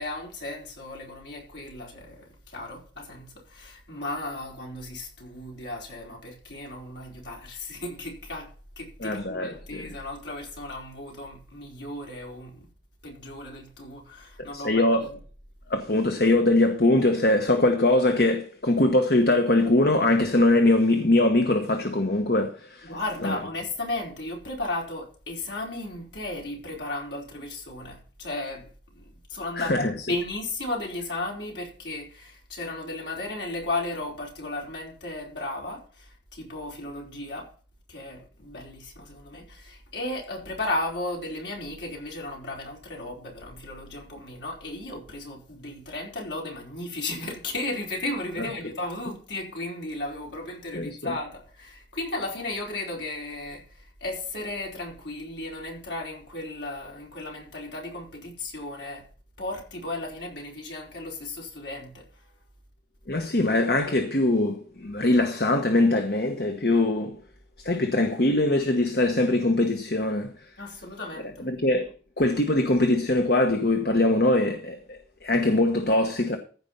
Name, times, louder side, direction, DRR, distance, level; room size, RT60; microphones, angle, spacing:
voice 1, 0.0-12.7 13.0-15.1 22.8-37.5 37.9-59.1 59.4-62.0 70.6-71.5, left 2 dB, 70° left, 4.6 m, -35 dB
voice 2, 9.0-9.8 14.5-15.1 15.7-22.9 23.2-23.4 29.6-29.9 50.7-51.1 63.1-67.2 67.6-70.3 71.4-71.9 72.2-76.4, left 2 dB, 55° left, 1.2 m, -22 dB
15.0 x 5.3 x 5.7 m
head